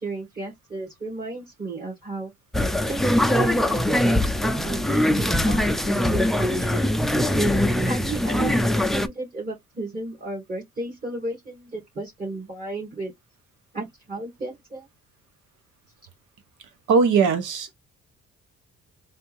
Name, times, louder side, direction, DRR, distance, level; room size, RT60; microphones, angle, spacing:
voice 1, 0.0-2.3 2.9-6.8 7.8-8.5 8.9-13.1 13.7-14.9, right 2 dB, 30° right, 1.7 m, -34 dB
sound 1, 2.5-9.1, left 1 dB, ahead, 0.4 m, -22 dB
voice 2, 16.9-17.7, right 5 dB, 80° right, 1.1 m, -19 dB
3.4 x 2.6 x 3.1 m
cardioid pair, 90°, 30 cm